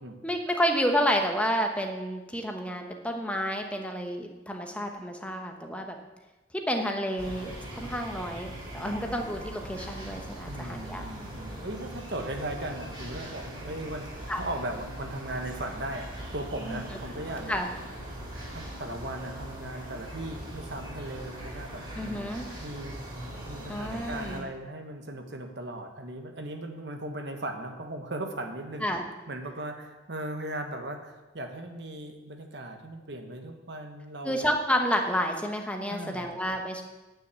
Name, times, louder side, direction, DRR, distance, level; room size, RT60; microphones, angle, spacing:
voice 1, 0.2-6.0 6.7-11.0 14.3-14.4 16.7-16.8 17.5-17.7 21.9-22.5 23.7-24.5 28.8-29.0 34.2-36.8, equal, 5° left, 3 dB, 1.0 m, -30 dB
sound 1, 7.2-24.4, right 1 dB, 25° right, 3.4 m, -41 dB
voice 2, 10.5-17.6 18.5-22.3 22.6-23.0 23.5-29.0 29.3-34.5 35.9-36.3, right 1 dB, 60° right, 4 dB, 1.2 m, -38 dB
9.8 x 6.3 x 8.1 m, 1.1 s
head